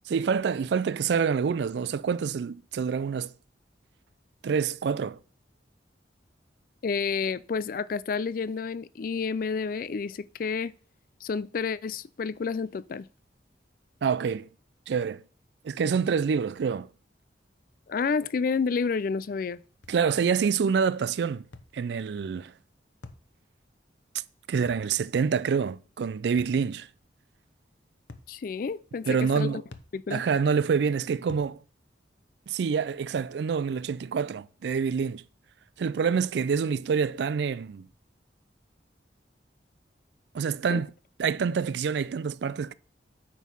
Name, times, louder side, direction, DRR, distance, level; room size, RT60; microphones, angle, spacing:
voice 1, 0.1-3.3 4.4-5.2 14.0-14.5 14.9-15.2 15.6-16.9 19.9-21.4 21.7-22.5 24.5-26.9 29.1-29.6 30.1-31.6 32.5-35.2 35.8-37.9 40.3-40.9 41.2-42.7, right 6 dB, 65° right, 0.3 m, -27 dB
voice 2, 6.8-10.7 11.2-13.1 17.9-19.6 28.3-29.5 29.9-30.2 40.7-40.8, left 5 dB, 50° left, 0.3 m, -30 dB
sound 1, 19.8-20.1 21.5-21.8 23.0-23.3 24.7-24.9 26.4-26.6 28.1-28.3 29.7-30.0 31.3-31.5, left 2 dB, 80° left, 0.8 m, -46 dB
9.2 x 3.8 x 6.2 m
head